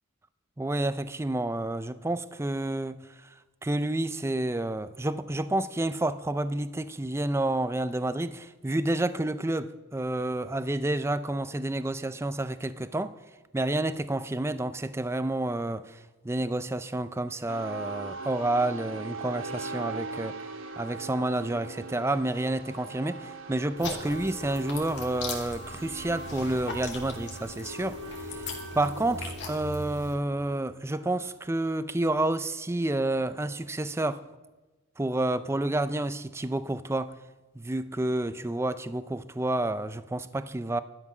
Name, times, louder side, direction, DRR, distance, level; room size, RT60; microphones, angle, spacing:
voice 1, 0.6-3.0 3.6-13.1 13.5-20.4 20.8-28.5 28.7-34.2 35.0-37.1 37.6-40.8, right 1 dB, 10° right, 0.4 m, -29 dB
sound 1, 17.5-31.7, right 2 dB, 65° right, 1.2 m, -41 dB
sound 2, 23.8-30.1, left 3 dB, 55° left, 2.3 m, -39 dB
13.0 x 12.0 x 6.0 m
head